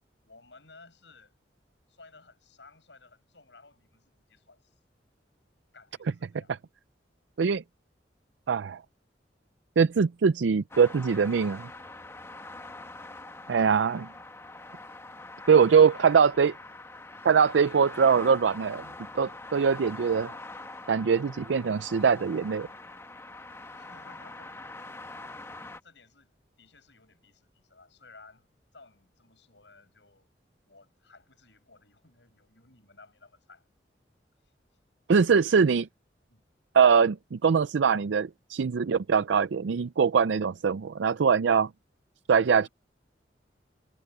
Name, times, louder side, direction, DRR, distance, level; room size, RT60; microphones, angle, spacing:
voice 1, 0.2-1.3 1.9-4.8 5.7-6.5 15.9-16.2 16.6-16.8 23.7-24.7 25.8-28.5 28.7-30.3 30.6-33.6 34.4-34.5 35.3-35.6 36.3-36.4 42.6-42.7, left 3 dB, 80° left, 7.0 m, -56 dB
voice 2, 8.5-8.8 9.8-11.7 13.5-14.1 15.5-16.5 17.2-18.9 19.1-20.3 20.9-22.7 35.1-35.9 36.7-41.7 42.3-42.7, right 6 dB, 85° right, 0.4 m, -22 dB
sound 1, 10.7-25.8, left 2 dB, 15° left, 1.1 m, -44 dB
head